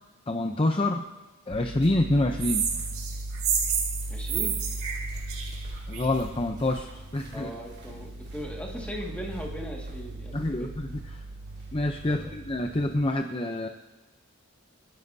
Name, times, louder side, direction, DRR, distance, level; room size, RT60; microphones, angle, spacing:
voice 1, 0.3-1.0 1.5-2.6 5.9-7.5 10.3-11.2 11.7-13.7, left 1 dB, 25° left, 5 dB, 0.6 m, -27 dB
sound 1, 1.5-13.1, right 1 dB, 50° right, 2.9 m, -38 dB
sound 2, 2.4-6.2, right 7 dB, 75° right, 2.1 m, -30 dB
voice 2, 4.1-4.6 7.3-10.7 12.1-12.2, equal, 5° left, -1 dB, 1.9 m, -38 dB
29.0 x 10.5 x 2.7 m, 1.2 s
head